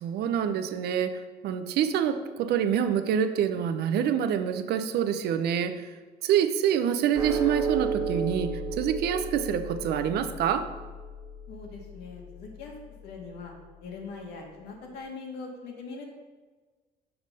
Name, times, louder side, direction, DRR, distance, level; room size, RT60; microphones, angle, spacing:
voice 1, 0.0-5.9 6.2-8.5 8.8-10.7, right 8 dB, 75° right, 10 dB, 0.6 m, -26 dB
sound 1, 7.1-13.7, right 4 dB, 20° right, 1.4 m, -34 dB
voice 2, 11.5-12.7 13.0-13.5 13.8-16.0, left 4 dB, 75° left, 0 dB, 1.7 m, -41 dB
5.9 x 5.3 x 5.4 m, 1.3 s
cardioid pair, 110°, 17 cm